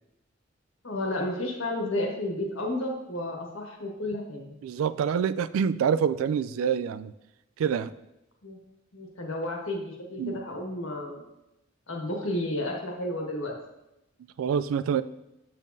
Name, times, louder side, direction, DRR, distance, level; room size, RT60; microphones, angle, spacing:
voice 1, 0.8-4.4 8.4-8.6 8.9-11.2 11.9-13.5, left 1 dB, 75° left, 0 dB, 1.5 m, -32 dB
voice 2, 4.6-7.1 7.6-7.9 10.2-10.4 14.4-15.0, right 7 dB, 90° right, 14 dB, 0.3 m, -26 dB
7.3 x 7.2 x 2.7 m, 0.90 s
head